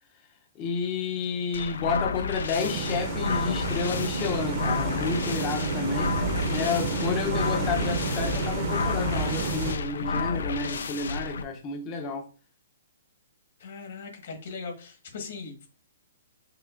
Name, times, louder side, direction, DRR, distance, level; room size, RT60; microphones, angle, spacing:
voice 1, 0.6-6.1 6.5-12.3, left 5 dB, 20° left, 0.7 m, -31 dB
sound 1, 1.5-11.4, left 4 dB, 70° left, 0.4 m, -31 dB
sound 2, 2.6-9.7, right 4 dB, 30° right, 0.7 m, -30 dB
voice 2, 13.6-15.7, left 4 dB, 50° left, 1.5 m, -39 dB
5.7 x 2.7 x 2.5 m
hypercardioid pair, 170°, 0 cm